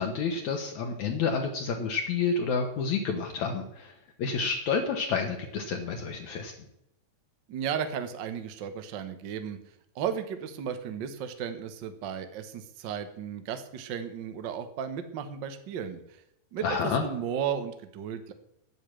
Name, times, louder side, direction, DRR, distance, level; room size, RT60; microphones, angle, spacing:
voice 1, 0.0-3.9 4.2-6.5 16.6-17.0, left 5 dB, 65° left, 2 dB, 2.4 m, -29 dB
voice 2, 7.5-9.6 9.9-16.2 16.5-18.3, right 8 dB, 85° right, 9 dB, 1.0 m, -34 dB
10.0 x 8.8 x 7.6 m, 0.79 s
omnidirectional pair, 3.8 m